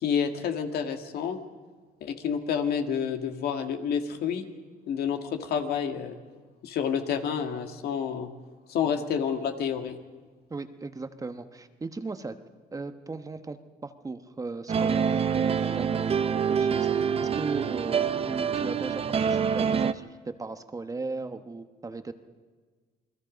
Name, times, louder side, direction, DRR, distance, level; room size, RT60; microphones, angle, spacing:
voice 1, 0.0-1.4 2.0-4.5 4.9-6.2 6.6-8.3 8.7-10.0, left 7 dB, 70° left, 5 dB, 2.0 m, -29 dB
voice 2, 10.5-12.4 12.7-22.1, right 3 dB, 20° right, 9 dB, 1.1 m, -37 dB
sound 1, 14.7-19.9, right 7 dB, 35° right, 0.8 m, -26 dB
28.5 x 21.0 x 5.2 m, 1.4 s
cardioid pair, 110°, 17 cm